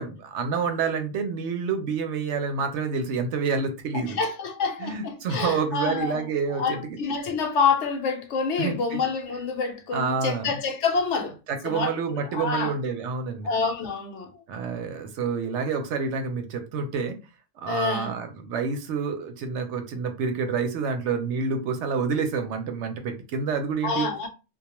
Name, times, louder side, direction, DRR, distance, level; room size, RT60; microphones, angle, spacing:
voice 1, 0.0-4.2 4.8-7.0 8.6-9.1 9.9-10.5 11.6-13.5 14.5-17.2 17.6-24.1, right 5 dB, 70° right, 0.8 m, -28 dB
voice 2, 3.9-11.4 11.6-12.7 13.4-14.4 17.7-18.2 23.8-24.3, left 5 dB, 70° left, 0.9 m, -27 dB
2.3 x 2.2 x 2.9 m
omnidirectional pair, 1.3 m